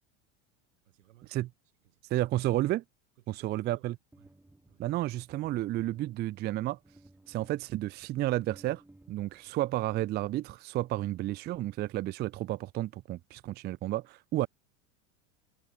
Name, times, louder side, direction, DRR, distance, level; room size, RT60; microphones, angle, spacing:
voice 1, 0.8-1.5 1.8-2.3 3.2-4.4 4.7-4.9 9.5-9.6 14.4-14.5, right 16 dB, 85° right, 7.9 m, -61 dB
voice 2, 2.1-2.8 3.3-3.9 4.8-6.8 7.3-8.8 9.1-14.5, right 15 dB, 30° right, 0.4 m, -31 dB
sound 1, 4.1-10.7, right 2 dB, 5° right, 3.0 m, -60 dB
supercardioid pair, 120°, 36 cm